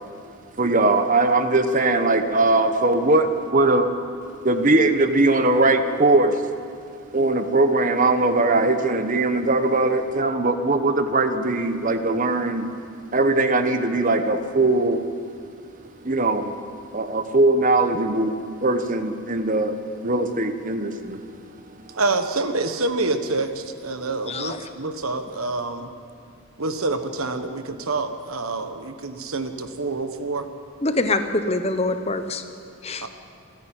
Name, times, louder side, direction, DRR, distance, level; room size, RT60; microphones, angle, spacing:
voice 1, 0.6-3.9 4.4-6.4 7.1-12.7 13.1-15.0 16.0-16.5 16.9-21.2, right 2 dB, 35° right, 8 dB, 1.1 m, -20 dB
voice 2, 21.9-25.9 26.6-30.5 33.0-33.1, right 3 dB, 80° right, 8 dB, 1.3 m, -27 dB
voice 3, 30.8-32.4 32.8-33.1, left 2 dB, 30° left, 8 dB, 0.9 m, -24 dB
28.0 x 10.5 x 8.9 m, 2.4 s
head